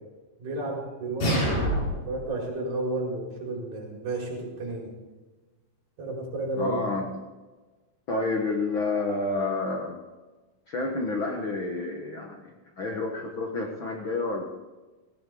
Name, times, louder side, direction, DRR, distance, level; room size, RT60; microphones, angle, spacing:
voice 1, 0.4-4.9 6.0-6.8, right 2 dB, 60° right, -3 dB, 6.5 m, -32 dB
sound 1, 1.2-2.2, equal, 85° left, 9.2 m, -26 dB
voice 2, 6.5-7.1 8.1-10.0 10.7-14.4, left 3 dB, 60° left, 1 dB, 1.3 m, -29 dB
18.0 x 17.5 x 3.9 m, 1.2 s
omnidirectional pair, 4.7 m